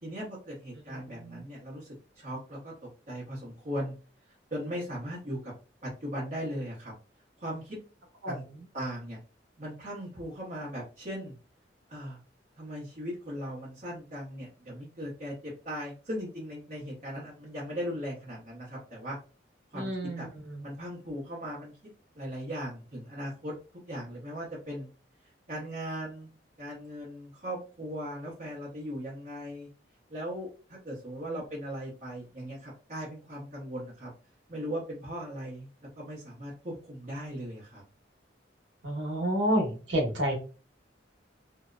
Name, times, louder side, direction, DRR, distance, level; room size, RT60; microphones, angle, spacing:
voice 1, 0.0-2.7 3.1-3.9 4.5-5.5 5.8-6.9 7.4-7.8 8.3-8.4 8.7-9.2 9.6-11.3 11.9-12.2 12.6-19.2 19.7-20.3 20.6-21.7 22.1-23.5 23.8-24.9 25.5-26.3 26.6-29.7 30.1-34.1 34.5-35.7 36.0-37.8, equal, 40° right, -7 dB, 0.8 m, -38 dB
voice 2, 0.9-1.4 8.2-8.4 19.7-20.6 31.3-31.4 38.8-40.3, equal, 75° right, 0 dB, 1.0 m, -30 dB
2.7 x 2.0 x 2.3 m, 0.35 s
head